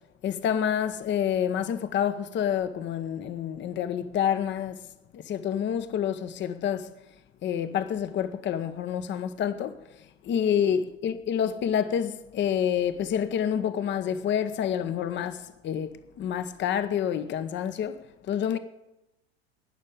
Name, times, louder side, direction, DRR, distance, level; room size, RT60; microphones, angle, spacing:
voice 1, 0.2-4.9 5.1-6.9 7.4-18.6, left 9 dB, 35° left, 0.9 m, -28 dB
18.5 x 6.6 x 7.1 m
hypercardioid pair, 80°, 33 cm